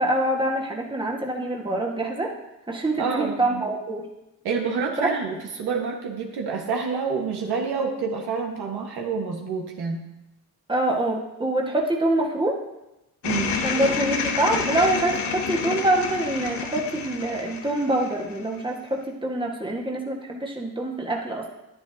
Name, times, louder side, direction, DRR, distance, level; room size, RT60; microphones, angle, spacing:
voice 1, 0.0-2.3 2.7-4.1 5.0-5.1 10.7-12.6 13.6-21.6, right 1 dB, 10° right, -1 dB, 1.6 m, -25 dB
voice 2, 3.0-3.6 4.4-10.0 13.2-13.6, right 5 dB, 70° right, 0 dB, 1.6 m, -28 dB
sound 1, 13.2-18.7, left 6 dB, 90° left, 1.0 m, -29 dB
9.9 x 9.8 x 2.8 m, 0.93 s
cardioid pair, 70°, 39 cm